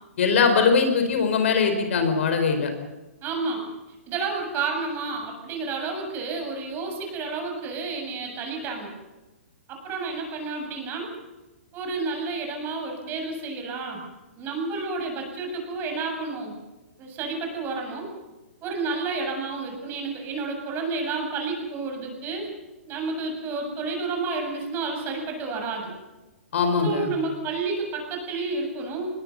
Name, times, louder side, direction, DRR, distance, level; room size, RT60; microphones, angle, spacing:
voice 1, 0.2-2.7 26.5-27.1, left 5 dB, 65° left, 6 dB, 5.0 m, -21 dB
voice 2, 3.2-3.6 4.1-8.9 9.7-11.1 11.7-14.0 14.4-16.5 17.0-18.1 18.6-22.5 22.9-25.9 26.8-29.1, right 4 dB, 30° right, 2 dB, 7.8 m, -30 dB
24.0 x 21.0 x 6.7 m, 1.1 s
hypercardioid pair, 130°, 7 cm